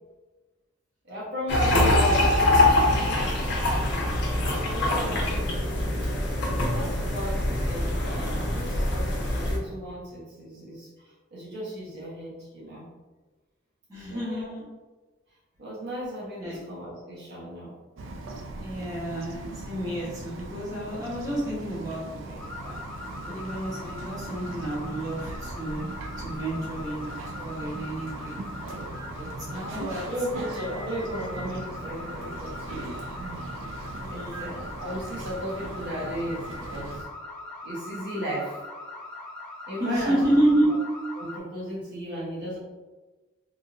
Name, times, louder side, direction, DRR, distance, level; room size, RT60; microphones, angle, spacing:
voice 1, 1.0-2.4 4.7-5.3 6.3-10.9 11.3-12.9 14.0-14.5 15.6-17.8 29.5-33.0 34.1-37.1 37.6-38.6 39.7-40.2 41.2-42.6, equal, 60° right, -7 dB, 1.2 m, -35 dB
sound 1, 1.5-9.6, left 1 dB, 60° left, 0.9 m, -24 dB
voice 2, 4.8-5.3 13.9-14.6 16.4-16.6 18.6-22.8 23.3-25.8 26.2-28.3 29.1-30.1 33.9-34.5 39.8-40.7, right 1 dB, 20° right, -9 dB, 1.2 m, -30 dB
Bird vocalization bird call bird song, 18.0-37.0, right 2 dB, 90° right, 0.4 m, -39 dB
sound 2, 22.4-41.4, left 2 dB, 5° left, 0.6 m, -41 dB
3.7 x 2.7 x 2.5 m, 1.2 s
head